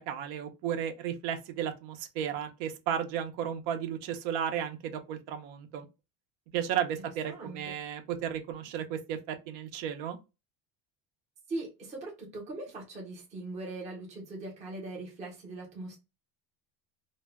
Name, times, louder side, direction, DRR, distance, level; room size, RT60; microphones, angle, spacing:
voice 1, 0.0-5.9 6.5-10.2, right 9 dB, 80° right, 0.7 m, -34 dB
voice 2, 7.2-7.6 11.5-16.0, right 2 dB, 15° right, 0.5 m, -40 dB
2.1 x 2.0 x 3.4 m
cardioid pair, 180°, 47 cm